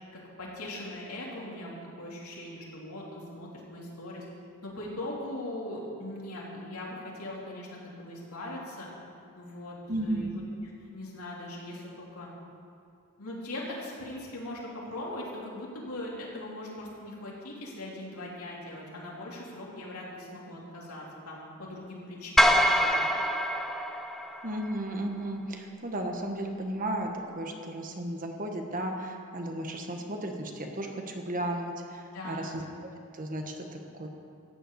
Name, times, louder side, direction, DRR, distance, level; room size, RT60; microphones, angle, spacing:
voice 1, 0.4-4.2 4.6-8.9 9.3-10.3 10.9-12.3 13.2-23.1 32.1-32.6, left 1 dB, 75° left, -4 dB, 3.4 m, -40 dB
voice 2, 9.9-10.4 24.4-32.6 33.1-34.1, right 1 dB, 40° right, 3 dB, 1.3 m, -34 dB
sound 1, 22.4-24.7, equal, ahead, 0.7 m, -24 dB
14.5 x 7.9 x 8.4 m, 2.5 s
head